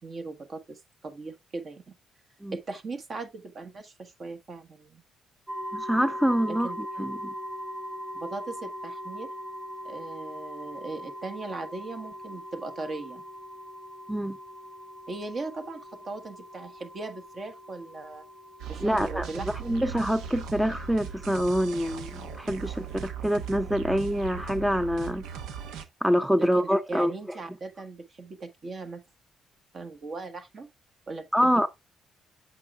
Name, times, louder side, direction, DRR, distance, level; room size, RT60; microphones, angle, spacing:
voice 1, 0.0-1.9 2.5-5.0 6.5-6.8 8.1-9.3 9.8-13.2 15.1-18.2 18.7-19.5 26.4-29.0 29.7-30.7 31.1-31.5, right 3 dB, 45° right, 1.4 m, -39 dB
sound 1, 5.5-25.1, equal, 20° right, 1.7 m, -42 dB
voice 2, 5.7-6.7 7.0-7.3 14.1-14.4 18.8-25.2 26.0-27.1 31.3-31.7, equal, 5° right, 0.6 m, -26 dB
sound 2, 18.6-25.8, right 7 dB, 90° right, 0.9 m, -38 dB
8.2 x 7.6 x 2.4 m
cardioid pair, 90°, 0 cm